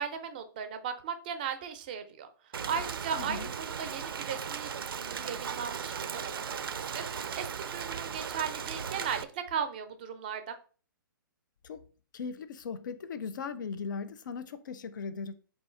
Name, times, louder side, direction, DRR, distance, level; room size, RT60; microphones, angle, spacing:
voice 1, 0.0-2.3 2.7-4.7 5.0-7.1 7.4-10.5, right 7 dB, 25° right, 0.4 m, -37 dB
Rain, 2.5-9.2, right 7 dB, 85° right, 0.4 m, -37 dB
voice 2, 3.1-3.5 11.6-11.8 12.1-15.3, left 5 dB, 60° left, 0.4 m, -38 dB
3.8 x 2.7 x 4.3 m
hypercardioid pair, 170°, 12 cm